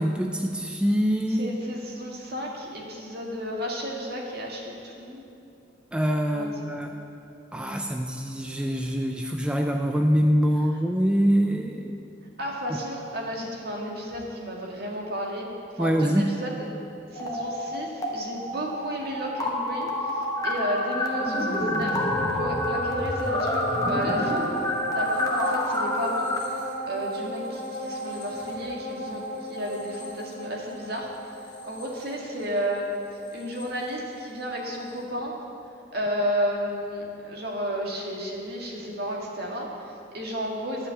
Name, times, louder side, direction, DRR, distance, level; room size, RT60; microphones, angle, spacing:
voice 1, 0.0-1.5 5.9-6.9 7.5-11.9 12.7-12.8 15.8-16.3, equal, 5° right, 3 dB, 0.4 m, -24 dB
voice 2, 1.3-5.2 6.3-6.8 10.7-10.8 12.4-15.5 15.8-16.7 17.1-24.7 24.9-26.3 26.9-31.1 31.6-32.9 33.3-35.3 35.9-40.9, equal, 55° right, -1 dB, 1.8 m, -32 dB
sound 1, 17.1-18.1 18.4-26.4, left 1 dB, 20° left, 1.2 m, -28 dB
sound 2, 20.9-34.6 35.0-35.1, equal, 40° left, 2.0 m, -36 dB
11.0 x 5.6 x 8.2 m, 2.7 s
head